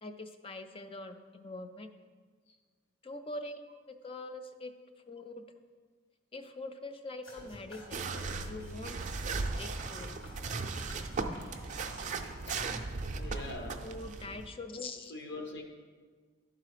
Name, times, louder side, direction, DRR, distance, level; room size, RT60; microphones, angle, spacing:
voice 1, 0.0-1.9 3.0-3.6 3.9-4.7 5.1-5.4 6.3-8.1 8.5-9.0 9.4-10.2 13.8-15.1, left 2 dB, 25° left, 8 dB, 0.4 m, -43 dB
sound 1, 7.2-13.1, equal, 75° left, 2.6 m, -50 dB
sound 2, 7.9-14.5, right 4 dB, 40° right, 0.4 m, -37 dB
voice 2, 13.1-13.9 15.1-15.6, left 2 dB, 60° left, 3 dB, 1.0 m, -43 dB
11.5 x 3.8 x 4.9 m, 1.5 s
head